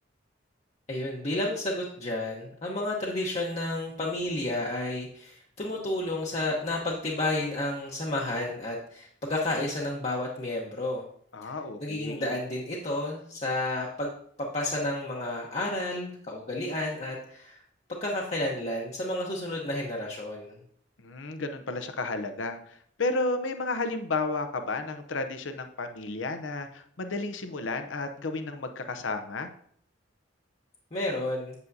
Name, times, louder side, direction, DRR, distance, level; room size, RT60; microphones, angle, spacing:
voice 1, 0.9-11.1 11.4-14.1 14.5-17.6 18.0-20.6 30.9-31.5, left 1 dB, 35° left, -3 dB, 1.0 m, -31 dB
voice 2, 11.3-12.3 21.0-29.5, left 3 dB, 75° left, 8 dB, 0.7 m, -32 dB
8.2 x 7.7 x 2.7 m, 0.63 s
head